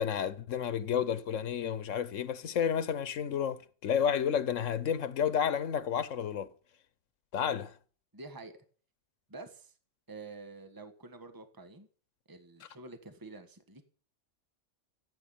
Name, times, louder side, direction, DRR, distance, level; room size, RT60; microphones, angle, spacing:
voice 1, 0.0-6.5 7.3-7.7, left 8 dB, 90° left, 1.3 m, -31 dB
voice 2, 8.1-8.6 9.3-9.7 10.1-11.9 12.3-13.9, right 3 dB, 15° right, 1.5 m, -48 dB
14.5 x 8.6 x 8.7 m
omnidirectional pair, 1.3 m